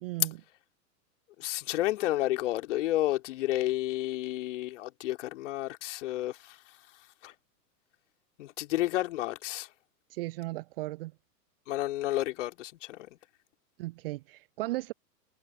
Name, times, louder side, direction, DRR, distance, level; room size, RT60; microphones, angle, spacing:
voice 1, 0.0-0.4 10.1-11.1 13.8-14.9, right 19 dB, 35° right, 0.9 m, -36 dB
voice 2, 1.4-6.6 7.2-7.3 8.4-9.7 11.7-13.1, left 15 dB, 45° left, 3.2 m, -31 dB
figure-of-eight pair, 105°, 49 cm